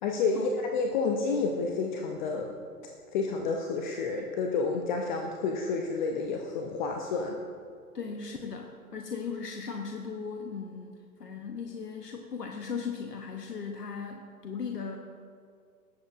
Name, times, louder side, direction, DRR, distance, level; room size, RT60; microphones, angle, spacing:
voice 1, 0.0-2.5 3.1-7.4, left 4 dB, 30° left, 2 dB, 0.7 m, -30 dB
voice 2, 7.9-15.0, left 5 dB, 90° left, 3 dB, 0.9 m, -37 dB
18.5 x 7.5 x 2.5 m, 2.2 s
figure-of-eight pair, 115°, 46 cm